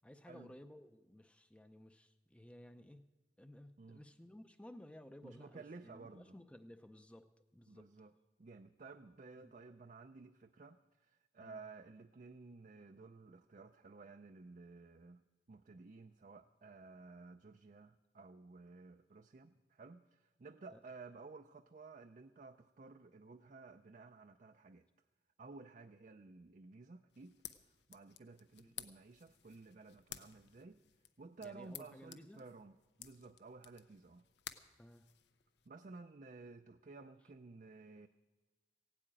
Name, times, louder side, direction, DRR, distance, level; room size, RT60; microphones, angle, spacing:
voice 1, 0.0-3.0 3.4-7.9 9.4-9.5 11.4-11.6 20.7-20.8 28.6-28.8 31.4-32.4 34.8-35.1, left 1 dB, 5° left, 10 dB, 0.5 m, -56 dB
voice 2, 5.2-6.4 7.7-8.1 8.4-15.2 15.5-24.9 25.4-27.4 27.9-30.8 31.2-34.3 35.7-38.1, right 3 dB, 45° right, 7 dB, 0.5 m, -55 dB
sound 1, 27.1-35.7, left 10 dB, 70° left, 0.7 m, -55 dB
16.0 x 8.5 x 8.9 m, 1.1 s
head